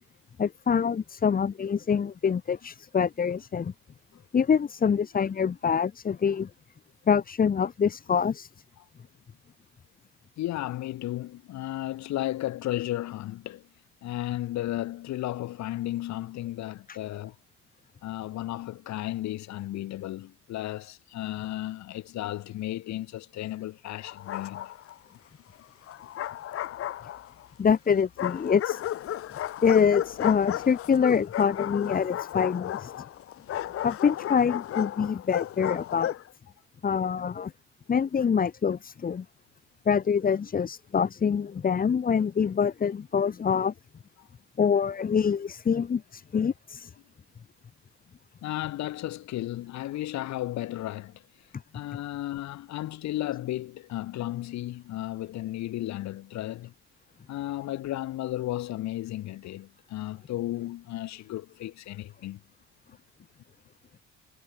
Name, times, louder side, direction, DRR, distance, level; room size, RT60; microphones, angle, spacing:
voice 1, 0.4-3.7 4.3-6.5 7.1-8.5 27.6-28.8 29.6-32.9 33.8-36.1 36.8-37.5 37.9-39.2 39.8-43.7 44.6-46.9, left 6 dB, 30° left, 1.6 m, -25 dB
voice 2, 10.4-13.7 14.0-17.3 18.0-24.7 44.2-44.3 48.4-51.2 51.7-56.7 57.3-62.4, left 15 dB, 65° left, 6.5 m, -34 dB
Bark, 24.0-24.9 25.9-27.5 28.2-36.3, left 12 dB, 50° left, 1.1 m, -34 dB
cardioid pair, 110°, 30 cm